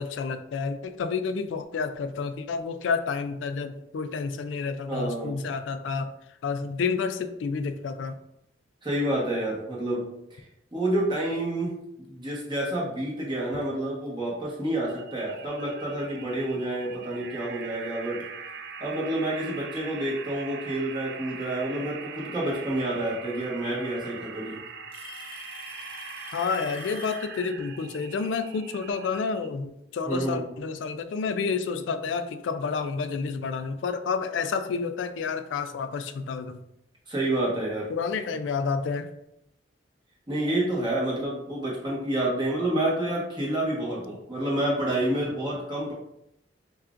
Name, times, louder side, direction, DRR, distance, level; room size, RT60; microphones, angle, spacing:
voice 1, 0.0-6.1 6.4-8.2 26.3-36.6 37.9-39.1, left 5 dB, 90° left, 9 dB, 0.3 m, -30 dB
voice 2, 4.9-5.4 8.8-10.4 10.7-18.2 18.8-24.6 30.0-30.5 37.1-37.9 40.3-45.9, right 1 dB, 25° right, -5 dB, 1.2 m, -29 dB
Alarm / Tick-tock, 13.4-13.6 14.5-14.6 15.4-15.5 17.2-17.3 18.5-18.6 19.8-20.3 22.0-22.1 23.4-23.5 23.8-24.3 24.9-27.4, left 4 dB, 30° left, 0.7 m, -45 dB
sound 1, 14.9-29.5, right 5 dB, 60° right, 0.4 m, -42 dB
5.6 x 2.4 x 2.5 m, 0.80 s
head